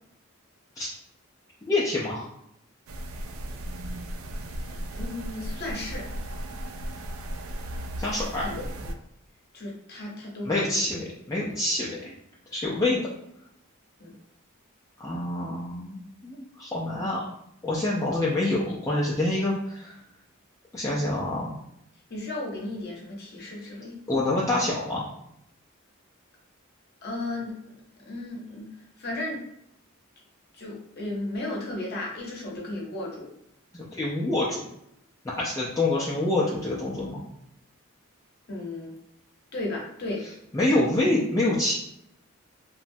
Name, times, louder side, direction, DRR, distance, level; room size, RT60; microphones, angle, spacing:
voice 1, 1.7-2.3 8.0-8.6 10.4-12.1 12.5-13.0 15.0-17.2 17.6-20.0 20.7-21.6 24.1-25.0 33.7-34.6 35.2-37.2 40.5-41.7, left 2 dB, 15° left, -6 dB, 0.4 m, -26 dB
sound 1, 2.9-8.9, equal, 75° right, 0.3 m, -35 dB
voice 2, 4.7-6.1 8.4-8.7 9.5-10.8 14.0-14.1 22.1-24.4 27.0-27.6 28.1-28.7 29.0-29.4 30.5-33.3 38.5-38.9 39.5-40.2, left 2 dB, 50° left, -2 dB, 0.8 m, -35 dB
2.9 x 2.1 x 2.6 m, 0.76 s
head